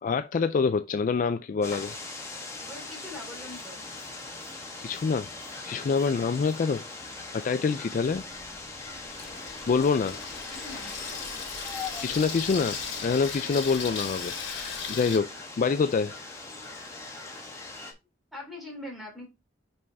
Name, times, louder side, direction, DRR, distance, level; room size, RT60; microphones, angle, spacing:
voice 1, 0.0-1.9 4.8-5.3 5.6-8.2 9.7-10.2 12.0-15.3 15.6-16.2, left 5 dB, 40° left, 0.3 m, -26 dB
sound 1, 1.6-17.9, left 3 dB, 15° left, 1.4 m, -40 dB
voice 2, 2.7-3.8 10.5-10.9 18.3-19.3, left 1 dB, ahead, 3.1 m, -42 dB
Water tap faucet / Sink (filling or washing), 8.1-15.2, left 5 dB, 65° left, 2.7 m, -38 dB
5.4 x 5.4 x 3.5 m
head